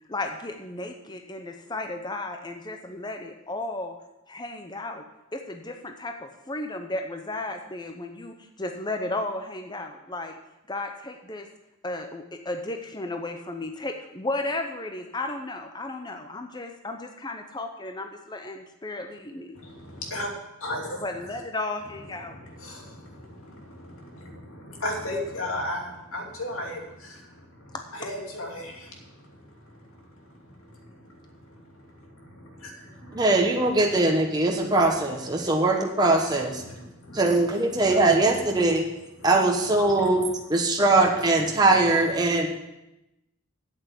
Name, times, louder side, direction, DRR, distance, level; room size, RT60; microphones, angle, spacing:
voice 1, 0.1-4.0 4.3-5.0 5.3-10.4 10.7-11.5 11.8-19.6 21.0-22.4 28.0-28.1 42.3-42.5, left 2 dB, 20° left, 5 dB, 0.7 m, -34 dB
voice 2, 19.5-20.3 20.6-21.0 22.1-33.3 34.6-34.8 35.4-35.5 36.2-37.2 37.7-38.8 39.2-39.3 39.8-40.3 40.7-41.0 41.3-42.4, left 1 dB, 75° left, 0 dB, 2.8 m, -38 dB
voice 3, 33.1-36.6 37.1-38.8 39.2-40.2 40.5-42.5, right 2 dB, 20° right, 1 dB, 1.1 m, -21 dB
8.5 x 8.3 x 8.3 m, 0.94 s
head